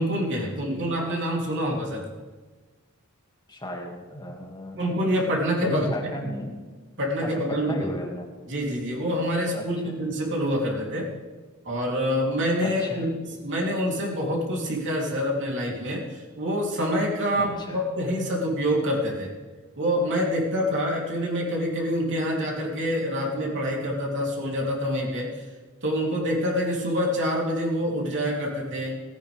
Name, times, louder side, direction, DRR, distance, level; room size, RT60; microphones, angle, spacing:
voice 1, 0.0-2.0 4.7-5.9 7.0-7.7 8.5-11.1 11.7-13.1 13.4-16.0 16.4-19.3 19.8-25.5 25.8-29.0, equal, 55° right, -2 dB, 3.4 m, -26 dB
voice 2, 3.5-4.8 5.6-6.6 7.2-8.2 9.5-10.0 12.6-13.1 17.4-17.8, equal, 20° left, -1 dB, 2.4 m, -34 dB
17.0 x 15.0 x 3.6 m, 1.3 s
head